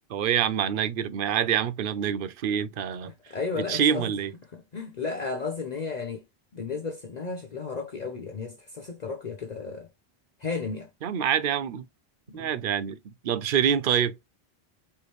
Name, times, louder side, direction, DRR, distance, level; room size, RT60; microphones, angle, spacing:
voice 1, 0.1-3.1 3.7-4.3 11.0-11.9 12.3-14.2, right 8 dB, 60° right, 0.7 m, -26 dB
voice 2, 3.3-4.1 4.7-6.2 6.5-9.9 10.4-10.9 12.3-12.5, left 4 dB, 45° left, 0.8 m, -33 dB
4.5 x 3.2 x 3.0 m
omnidirectional pair, 1.0 m